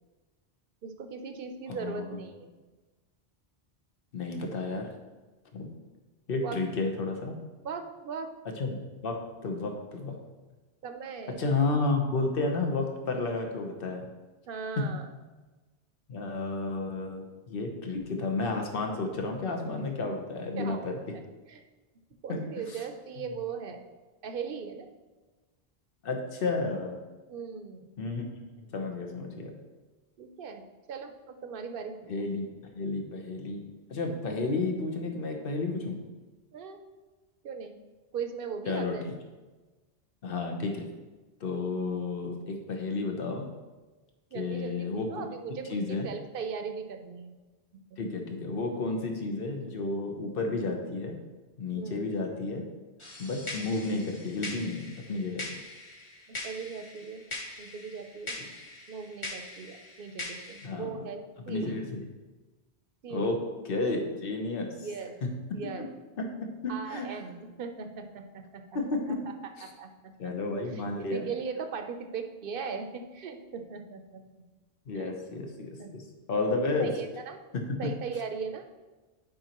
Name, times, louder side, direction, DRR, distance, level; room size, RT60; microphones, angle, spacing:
voice 1, 0.8-2.5 6.4-6.6 7.6-8.3 10.8-11.5 14.5-15.0 20.6-20.9 21.5-21.6 22.2-23.8 24.2-24.9 27.3-27.9 30.2-32.0 36.5-36.8 37.4-37.8 38.1-39.1 44.3-47.3 47.9-48.0 51.7-52.0 56.3-57.3 57.6-58.4 58.9-61.2 61.5-61.8 63.0-63.4 64.8-65.1 65.5-65.8 66.7-68.6 69.1-69.2 69.6-69.9 70.2-70.3 70.7-74.2 74.9-75.1 75.6-75.9 76.8-77.4 77.8-78.7, right 5 dB, 60° right, 6 dB, 0.8 m, -38 dB
voice 2, 1.7-2.2 4.1-4.9 5.5-5.7 6.3-7.4 8.6-10.1 11.4-14.0 14.8-14.9 16.1-21.0 22.3-22.8 26.0-27.0 28.0-28.2 28.7-29.5 32.1-36.0 38.7-39.1 40.2-40.9 41.4-43.4 44.3-45.3 45.7-46.1 48.0-51.2 51.6-52.7 53.2-55.5 60.6-61.0 61.5-62.0 63.1-63.4 63.6-64.9 65.2-65.6 66.2-67.1 68.7-69.2 69.6-69.7 70.2-71.3 74.9-76.0 76.3-76.9 77.5-77.8, left 3 dB, 60° left, 3 dB, 1.1 m, -32 dB
sound 1, 53.0-60.7, left 2 dB, 30° left, 1.1 m, -42 dB
10.5 x 5.1 x 3.0 m, 1.2 s
omnidirectional pair, 1.1 m